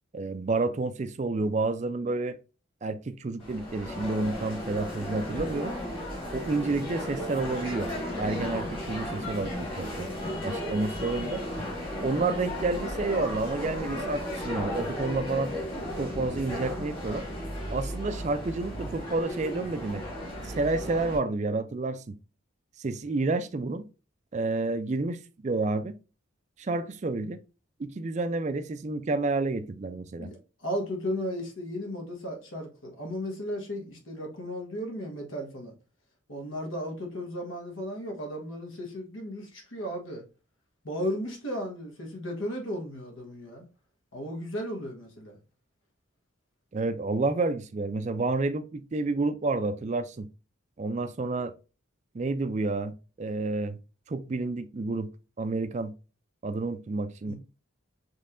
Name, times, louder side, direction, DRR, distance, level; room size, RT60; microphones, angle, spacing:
voice 1, 0.1-2.4 2.8-5.7 6.3-7.9 8.2-10.1 10.4-11.4 12.0-15.5 16.0-17.2 17.7-20.0 20.4-22.2 22.8-23.8 24.3-25.9 26.6-27.4 27.8-30.3 46.7-50.3 50.8-51.5 52.1-53.8 54.1-55.1 55.4-55.9 56.4-57.3, right 3 dB, 35° right, 0.4 m, -30 dB
sound 1, 3.4-21.2, left 1 dB, 25° left, 1.7 m, -35 dB
voice 2, 30.2-35.7 36.3-40.2 40.8-43.7 44.1-45.4 57.2-57.3, equal, 80° left, 1.3 m, -35 dB
5.3 x 3.2 x 2.5 m
head